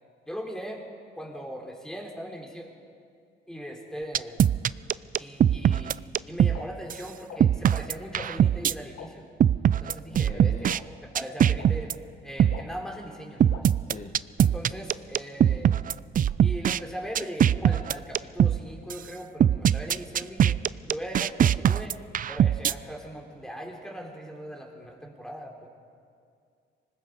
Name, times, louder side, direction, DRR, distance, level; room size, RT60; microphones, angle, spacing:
voice 1, 0.3-0.8 1.1-2.7 3.5-4.4 5.2-6.0 6.2-9.3 9.8-10.7 11.0-11.9 12.2-13.7 14.4-15.7 16.4-20.6 20.9-22.0 22.3-25.7, equal, 5° left, 1 dB, 3.9 m, -39 dB
sound 1, 4.1-6.6 6.9-7.0 7.4-8.7 9.4-10.8 11.2-11.9 12.4-12.6 13.4-16.8 17.2-18.6 18.9-19.0 19.4-22.7, right 9 dB, 45° right, 0.4 m, -21 dB
sound 2, 6.5-6.6 7.3-7.4 8.2-8.3 9.0-9.1 9.9-10.0 10.7-10.8 11.6-11.7 12.5-12.6 13.5-13.6, left 9 dB, 80° left, 1.7 m, -41 dB
voice 2, 10.1-10.7 13.9-14.2 14.5-14.8, left 4 dB, 40° left, 3 dB, 1.4 m, -43 dB
25.0 x 20.0 x 5.2 m, 2.3 s
cardioid pair, 90°, 20 cm